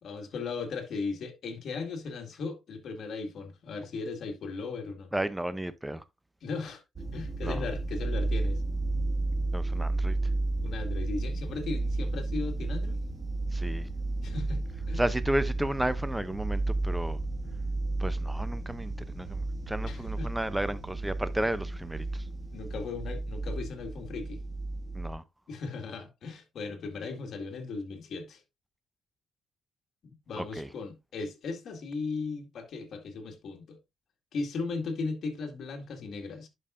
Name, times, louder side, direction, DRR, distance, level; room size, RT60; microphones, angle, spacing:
voice 1, 0.0-5.1 6.4-6.8 7.1-8.6 10.6-13.0 14.2-14.6 14.9-15.0 19.8-20.3 22.5-24.4 25.5-28.4 30.0-33.8 34.3-36.5, left 4 dB, 65° left, 2.0 m, -37 dB
voice 2, 5.1-6.0 7.4-7.6 9.5-10.2 13.5-13.9 15.0-17.2 18.0-22.0 24.9-25.2 30.4-30.7, right 1 dB, 5° right, 0.6 m, -33 dB
sound 1, 7.0-25.1, right 2 dB, 30° right, 1.7 m, -32 dB
11.0 x 5.5 x 2.5 m
cardioid pair, 110°, 0 cm